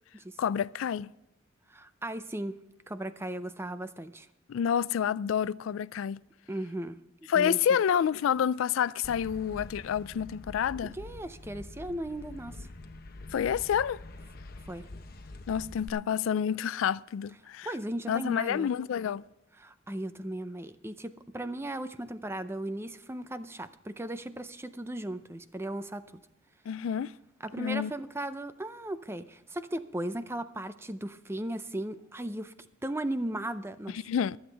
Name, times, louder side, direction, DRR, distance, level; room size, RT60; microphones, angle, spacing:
voice 1, 0.4-1.1 4.5-6.2 7.3-11.0 13.3-14.0 15.5-17.7 18.1-19.2 26.7-27.1 27.6-27.9 33.9-34.4, left 8 dB, 80° left, 0.3 m, -28 dB
voice 2, 1.7-2.6 2.9-4.3 6.5-7.0 7.4-7.6 10.8-12.7 14.7-14.9 17.6-18.7 19.6-26.0 27.4-34.0, right 1 dB, 10° right, 0.5 m, -36 dB
sound 1, 9.0-15.9, left 2 dB, 50° left, 0.9 m, -45 dB
23.5 x 8.0 x 3.4 m
head